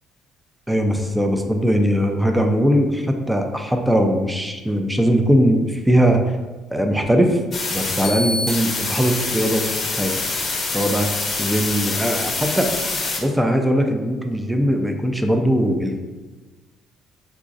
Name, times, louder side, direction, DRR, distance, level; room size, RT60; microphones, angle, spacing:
voice 1, 0.7-6.3 6.7-7.4 7.7-9.6 10.0-10.1 10.7-12.7 12.9-16.0, equal, 5° right, 4 dB, 0.4 m, -20 dB
sound 1, 7.5-13.2, left 3 dB, 40° left, 0.7 m, -25 dB
3.9 x 2.4 x 2.5 m, 1.3 s
cardioid pair, 90°, 0 cm